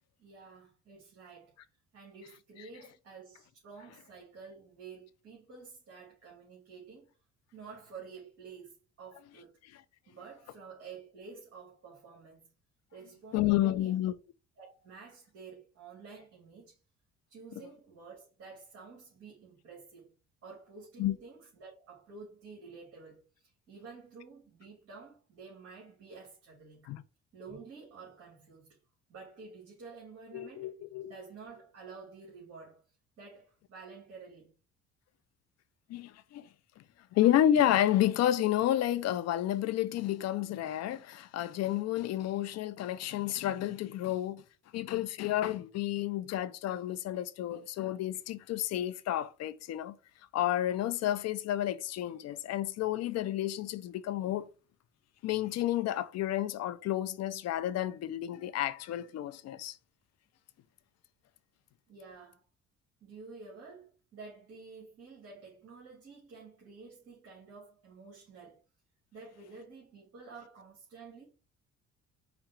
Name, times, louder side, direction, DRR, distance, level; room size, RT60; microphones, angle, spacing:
voice 1, 0.2-1.5 1.9-7.1 7.5-9.5 10.1-12.5 12.9-14.0 14.6-16.8 17.3-20.1 20.4-26.9 27.3-28.8 29.1-32.8 33.2-34.5 61.9-62.5 63.0-68.6 69.1-71.2, right 4 dB, 50° right, 2.3 m, -50 dB
voice 2, 13.3-14.2 21.0-21.2 26.9-27.0 30.3-31.1 35.9-36.4 37.1-44.4 44.7-50.0 50.3-54.5 55.2-59.8, left 12 dB, 60° left, 0.5 m, -30 dB
5.0 x 2.3 x 4.3 m
cardioid pair, 120°, 29 cm